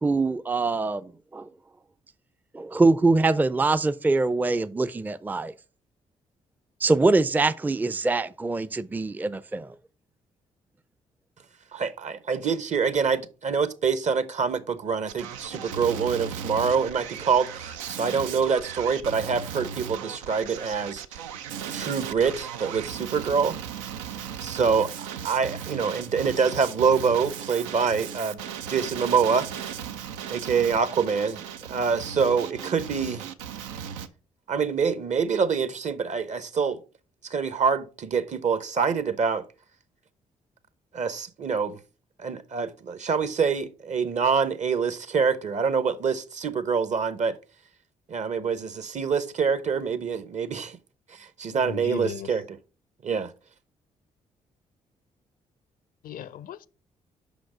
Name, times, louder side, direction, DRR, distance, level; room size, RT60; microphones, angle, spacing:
voice 1, 0.0-1.5 2.5-5.5 6.8-9.7, right 3 dB, 10° right, 0.4 m, -23 dB
voice 2, 11.7-21.2 21.7-23.6 24.4-28.4 28.7-29.7 30.3-33.3 34.5-36.8 37.2-39.4 40.9-41.8 42.2-47.3 48.1-50.8 51.2-52.6 53.0-53.3, right 6 dB, 45° right, 0.9 m, -26 dB
Male speech man speaking, 15.1-34.1, right 8 dB, 90° right, 0.4 m, -37 dB
voice 3, 51.5-52.3 56.0-56.7, left 8 dB, 60° left, 0.5 m, -36 dB
5.8 x 5.1 x 4.9 m
hypercardioid pair, 45°, 16 cm